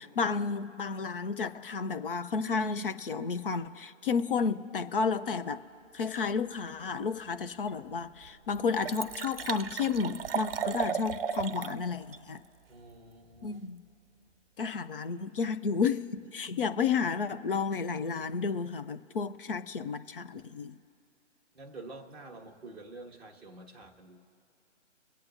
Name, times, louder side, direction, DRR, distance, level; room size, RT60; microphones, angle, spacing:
voice 1, 0.0-5.6 5.9-12.4 13.4-13.8 14.6-20.7, left 5 dB, 45° left, 10 dB, 0.6 m, -32 dB
Liquid, 7.7-7.8 8.2-8.3 8.5-11.8 12.1-12.2, right 7 dB, 50° right, 0.6 m, -34 dB
voice 2, 12.7-13.6 21.5-24.2, right 2 dB, ahead, -8 dB, 0.8 m, -48 dB
23.0 x 8.6 x 2.6 m, 2.7 s
figure-of-eight pair, 145°, 37 cm